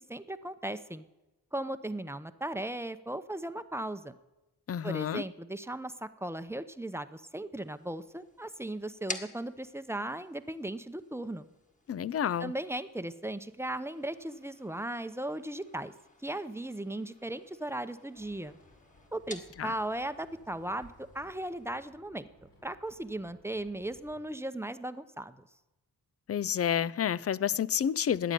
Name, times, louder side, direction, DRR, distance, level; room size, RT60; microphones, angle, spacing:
voice 1, 0.1-1.0 1.5-4.1 4.8-11.5 12.4-15.9 16.2-18.6 19.1-25.4, right 1 dB, 5° right, 0.8 m, -37 dB
voice 2, 4.7-5.2 11.9-12.5 19.6-19.7 26.3-28.3, left 9 dB, 40° left, 0.5 m, -29 dB
sound 1, 7.5-21.9, left 2 dB, 20° left, 1.6 m, -50 dB
Livestock farm animals working animals, 18.1-24.2, left 1 dB, 85° left, 5.9 m, -60 dB
15.0 x 9.8 x 9.2 m
wide cardioid pair, 100°, 40 cm